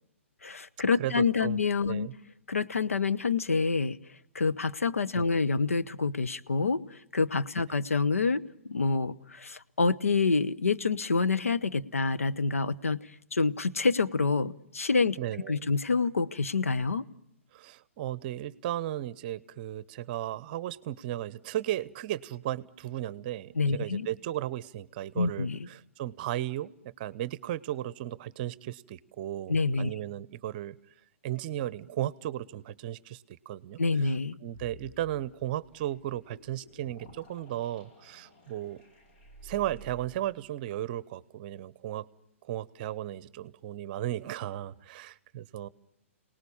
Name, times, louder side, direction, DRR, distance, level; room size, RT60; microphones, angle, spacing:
voice 1, 0.4-2.1 2.5-4.0 4.3-15.2 15.5-17.0 23.5-24.1 25.2-25.7 29.5-29.9 33.8-34.4, left 4 dB, 80° left, 12 dB, 1.0 m, -27 dB
voice 2, 1.0-2.1 5.2-5.3 15.2-15.6 17.5-26.7 27.0-30.8 31.2-33.8 34.4-38.8 39.4-42.0 42.5-45.7, right 13 dB, 40° right, 19 dB, 0.8 m, -35 dB
sound 1, 34.5-40.2, equal, 50° left, 4.0 m, -52 dB
29.0 x 19.0 x 7.1 m, 0.76 s
figure-of-eight pair, 125°, 7 cm